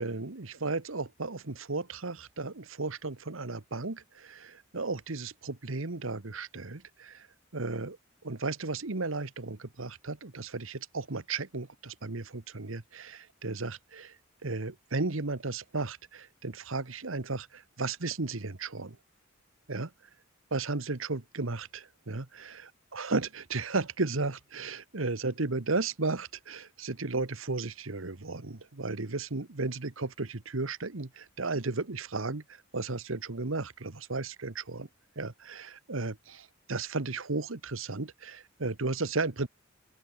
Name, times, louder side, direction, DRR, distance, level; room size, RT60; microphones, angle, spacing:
voice 1, 0.0-7.3 7.5-8.0 8.2-14.1 14.4-19.0 19.7-19.9 20.5-32.4 32.7-34.9 35.2-39.5, right 3 dB, 70° right, 1.4 m, -34 dB
open air
head